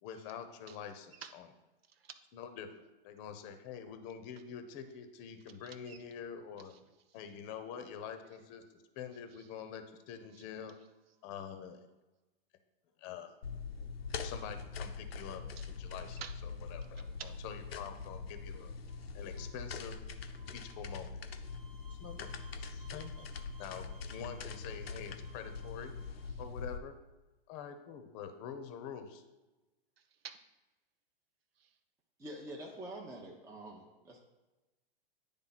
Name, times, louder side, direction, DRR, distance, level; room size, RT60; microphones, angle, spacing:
voice 1, 0.0-1.4 2.3-2.7 3.0-6.7 7.1-10.7 11.2-11.9 13.0-13.4 14.2-15.4 15.8-16.2 16.7-17.1 17.4-18.7 19.1-20.0 20.5-21.1 22.0-22.3 22.6-23.3 23.6-25.9 26.4-26.9 27.5-29.2, left 8 dB, 40° left, 8 dB, 0.8 m, -46 dB
voice 2, 1.1-1.5 1.9-2.2 5.6-6.0 6.6-6.8 7.1-7.2 9.3-9.5 10.3-10.5 14.1-14.2 15.6-15.7 16.2-16.3 16.8-17.3 18.5-19.1 19.4-19.5 20.4-20.8 26.2-26.4 30.0-30.4 31.6-31.8, right 8 dB, 80° right, 10 dB, 0.7 m, -52 dB
sound 1, 13.4-26.8, left 4 dB, 85° left, 0.7 m, -43 dB
sound 2, 21.4-26.3, right 4 dB, 55° right, 1.4 m, -62 dB
voice 3, 32.2-34.2, right 1 dB, 10° right, -2 dB, 0.7 m, -46 dB
9.8 x 3.4 x 4.1 m, 1.1 s
hypercardioid pair, 115°, 30 cm